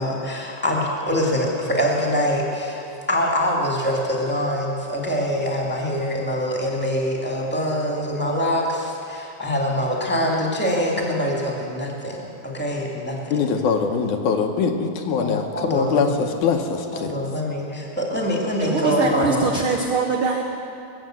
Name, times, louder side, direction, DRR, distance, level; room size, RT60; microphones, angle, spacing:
voice 1, 0.0-2.8 3.1-13.2 15.2-16.2 16.9-19.5, equal, 5° left, -2 dB, 1.6 m, -24 dB
voice 2, 13.3-17.1, left 5 dB, 75° left, 4 dB, 2.3 m, -22 dB
voice 3, 18.6-20.4, right 5 dB, 75° right, 1 dB, 1.2 m, -23 dB
20.0 x 8.4 x 7.7 m, 2.6 s
omnidirectional pair, 3.8 m